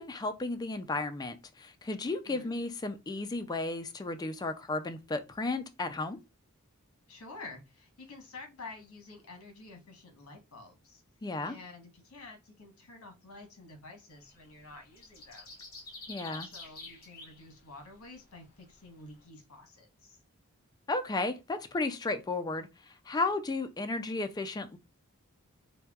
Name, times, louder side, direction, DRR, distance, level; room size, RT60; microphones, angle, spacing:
voice 1, 0.0-6.2 11.2-11.6 16.1-16.5 20.9-22.7 23.1-24.8, left 2 dB, 20° left, 0.3 m, -34 dB
voice 2, 7.1-11.0 11.4-15.6 16.2-20.2, left 3 dB, 75° left, 1.0 m, -50 dB
sound 1, 14.2-14.5 14.7-17.4 17.8-17.9, left 3 dB, 40° left, 1.0 m, -47 dB
4.1 x 2.2 x 2.3 m
head